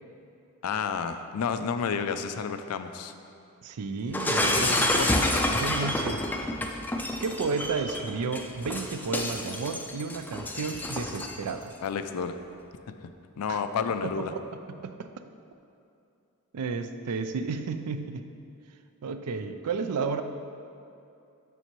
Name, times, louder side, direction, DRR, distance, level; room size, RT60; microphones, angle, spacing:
voice 1, 0.6-3.1 4.3-5.1 11.8-12.4 13.0-13.1 13.4-14.3, left 6 dB, 85° left, 9 dB, 0.4 m, -31 dB
voice 2, 3.6-5.0 5.5-6.2 7.2-11.7 13.5-13.6 14.0-14.4 14.8-15.1 16.5-18.3 19.0-20.2, right 4 dB, 90° right, 9 dB, 0.4 m, -32 dB
Shatter, 4.1-11.5, left 1 dB, 10° left, 0.3 m, -28 dB
7.0 x 6.7 x 3.0 m, 2.6 s
head